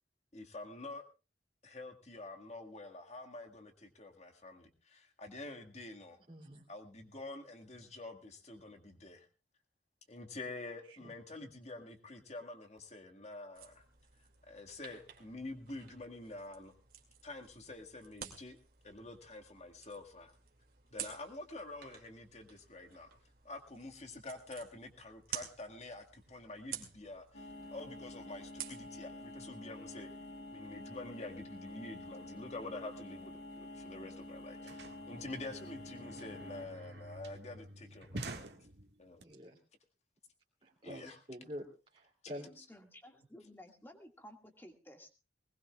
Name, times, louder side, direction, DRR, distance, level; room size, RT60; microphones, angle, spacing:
voice 1, 0.3-1.1 1.6-6.2 6.7-9.3 10.1-13.8 14.4-16.8 17.2-18.6 18.8-20.3 20.9-23.1 23.4-30.1 30.5-38.5 39.0-39.2 40.8-41.2, left 2 dB, 40° left, 5 dB, 1.9 m, -47 dB
voice 2, 6.3-6.6 36.0-36.2 39.2-39.6 40.6-41.7 41.9-42.5, equal, 30° right, -3 dB, 2.8 m, -47 dB
sound 1, 13.5-28.9, right 9 dB, 55° right, 2.4 m, -51 dB
sound 2, 27.3-36.7, left 1 dB, 65° left, 3.4 m, -49 dB
sound 3, 33.7-33.8 34.0-39.2, right 2 dB, 75° right, 1.8 m, -48 dB
voice 3, 42.4-45.1, equal, 10° left, 4 dB, 1.9 m, -55 dB
21.0 x 19.5 x 2.4 m, 0.31 s
head